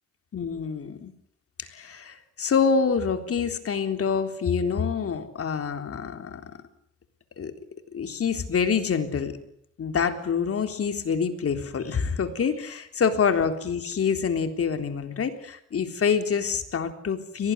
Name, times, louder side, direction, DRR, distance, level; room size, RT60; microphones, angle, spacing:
voice 1, 0.3-1.1 1.6-6.4 7.4-7.5 7.9-9.4 9.8-17.5, left 6 dB, 50° left, 7 dB, 3.7 m, -26 dB
23.5 x 19.0 x 9.8 m, 0.72 s
cardioid pair, 90°, 30 cm